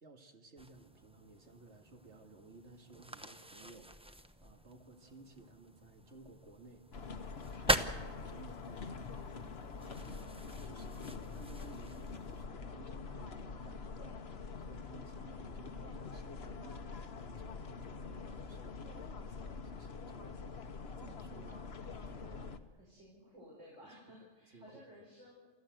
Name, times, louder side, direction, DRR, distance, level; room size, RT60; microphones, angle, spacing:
voice 1, 0.0-10.4 10.6-14.2 14.6-20.7 21.0-22.8 24.5-24.8, right 3 dB, 70° right, 5 dB, 2.2 m, -57 dB
sound 1, 0.6-12.5, equal, 5° right, 0.7 m, -42 dB
sound 2, 6.9-22.6, left 4 dB, 60° left, 1.3 m, -45 dB
voice 2, 22.8-25.5, equal, 90° right, -3 dB, 5.1 m, -56 dB
30.0 x 14.5 x 7.9 m, 1.3 s
omnidirectional pair, 1.2 m